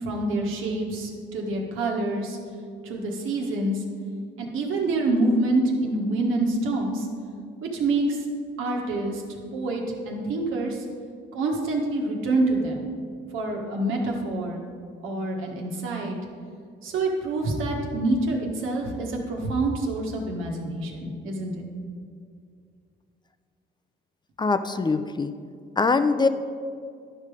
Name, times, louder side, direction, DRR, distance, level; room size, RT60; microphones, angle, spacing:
voice 1, 0.0-2.4 2.8-3.8 4.4-7.1 7.6-8.2 8.6-9.2 9.5-10.8 11.3-12.9 13.3-14.6 15.0-16.2 16.8-21.5, right 2 dB, 90° right, 0 dB, 1.5 m, -26 dB
voice 2, 24.4-25.3 25.8-26.3, left 4 dB, 20° left, 10 dB, 0.4 m, -22 dB
11.5 x 5.3 x 5.0 m, 2.2 s
cardioid pair, 90°, 20 cm